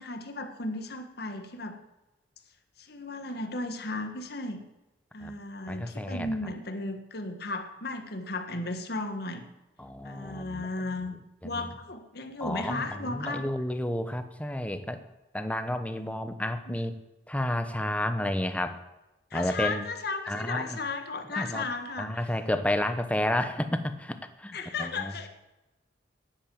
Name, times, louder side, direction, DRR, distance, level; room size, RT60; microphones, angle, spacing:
voice 1, 0.0-1.8 2.8-4.6 5.1-9.4 10.0-11.1 11.4-13.4 16.7-16.8 19.3-22.1 24.5-25.3, left 3 dB, 60° left, 6 dB, 1.6 m, -35 dB
voice 2, 5.7-6.3 9.8-10.7 11.4-11.7 12.4-15.0 15.3-17.0 17.3-18.8 19.3-19.8 20.3-20.8 21.3-21.7 22.0-25.3, left 1 dB, 5° left, 9 dB, 0.9 m, -31 dB
10.5 x 9.7 x 7.7 m, 0.98 s
head